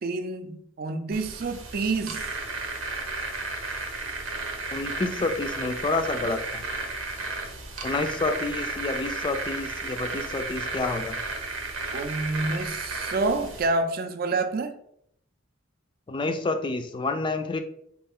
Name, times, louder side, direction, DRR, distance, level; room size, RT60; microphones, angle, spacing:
voice 1, 0.0-2.4 11.9-14.7, right 3 dB, 45° right, 7 dB, 0.4 m, -28 dB
sound 1, 1.1-13.7, right 3 dB, 85° right, 0.8 m, -33 dB
voice 2, 4.7-6.6 7.8-11.2 16.1-17.6, left 3 dB, 25° left, 7 dB, 0.3 m, -29 dB
4.2 x 2.4 x 3.5 m, 0.70 s
head